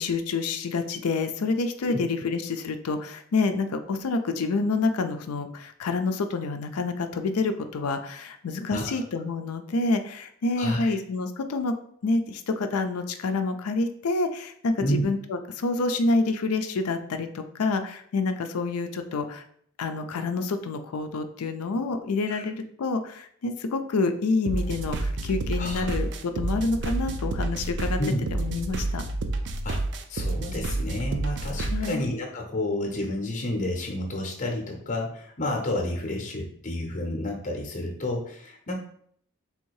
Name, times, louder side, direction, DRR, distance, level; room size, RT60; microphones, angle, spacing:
voice 1, 0.0-11.7 12.0-19.4 19.8-28.0 28.3-29.0 31.6-32.0, left 3 dB, 80° left, 7 dB, 0.4 m, -28 dB
voice 2, 8.7-9.0 10.6-11.0 14.8-15.0 22.3-22.4 25.6-25.9 28.0-28.2 29.6-29.8 30.1-38.8, left 1 dB, 35° left, 1 dB, 0.7 m, -30 dB
sound 1, 24.5-31.9, right 2 dB, 55° right, 0.5 m, -29 dB
3.5 x 2.7 x 4.6 m, 0.63 s
head